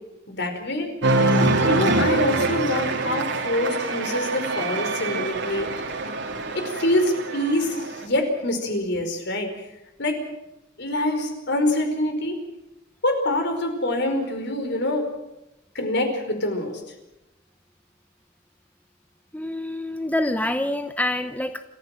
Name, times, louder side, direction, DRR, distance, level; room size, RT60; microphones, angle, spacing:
voice 1, 0.3-0.9 1.7-5.7 6.5-9.5 10.0-10.2 10.8-12.4 13.0-15.1 15.7-16.8, left 1 dB, 60° left, 6 dB, 4.8 m, -25 dB
Cheering, 1.0-8.0, right 2 dB, 65° right, 3.0 m, -24 dB
voice 2, 19.3-21.6, left 1 dB, 10° left, 9 dB, 0.8 m, -26 dB
27.5 x 15.0 x 7.7 m, 0.94 s
head